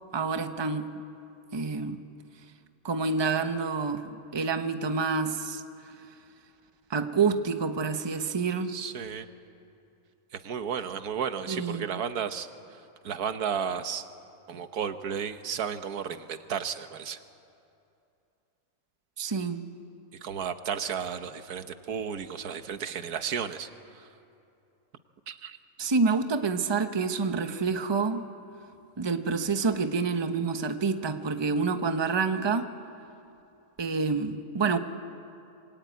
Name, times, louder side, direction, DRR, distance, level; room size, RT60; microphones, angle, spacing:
voice 1, 0.1-0.9 1.5-2.0 2.8-5.6 6.9-8.8 11.5-12.0 19.2-19.7 25.8-28.3 29.0-32.7 33.8-34.8, right 4 dB, 20° right, 8 dB, 0.9 m, -28 dB
voice 2, 8.7-9.3 10.3-14.0 14.5-17.2 20.2-24.1 25.3-25.6, right 7 dB, 80° right, 10 dB, 1.6 m, -33 dB
26.0 x 22.0 x 9.3 m, 2.7 s
omnidirectional pair, 1.6 m